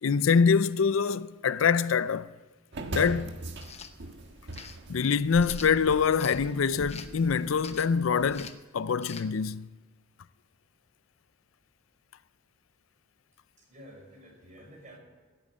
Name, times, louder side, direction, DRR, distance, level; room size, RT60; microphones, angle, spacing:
voice 1, 0.0-2.3 2.9-3.4 4.9-9.7, left 6 dB, 70° left, 0.5 m, -25 dB
sound 1, 2.7-8.4, right 2 dB, 60° right, 1.5 m, -41 dB
sound 2, 3.5-3.9 4.5-4.8 5.4-6.4 6.9-7.2 7.6-8.0 8.3-8.6 9.0-9.3, left 6 dB, 30° left, 0.9 m, -44 dB
voice 2, 13.6-15.0, equal, 40° right, 5.4 m, -50 dB
16.0 x 8.8 x 9.8 m
head